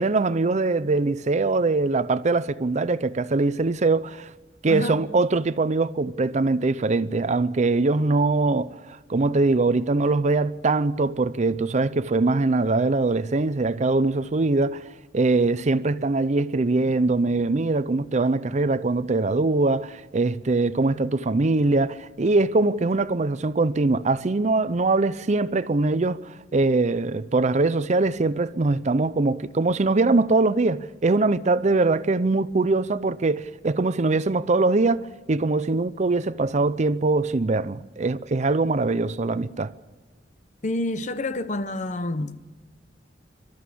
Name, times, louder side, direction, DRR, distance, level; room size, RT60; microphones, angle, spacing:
voice 1, 0.0-4.3 4.6-14.9 15.1-39.7, right 3 dB, 40° right, 0.6 m, -22 dB
voice 2, 40.6-42.4, left 2 dB, 45° left, 0.8 m, -28 dB
28.5 x 13.0 x 8.5 m
head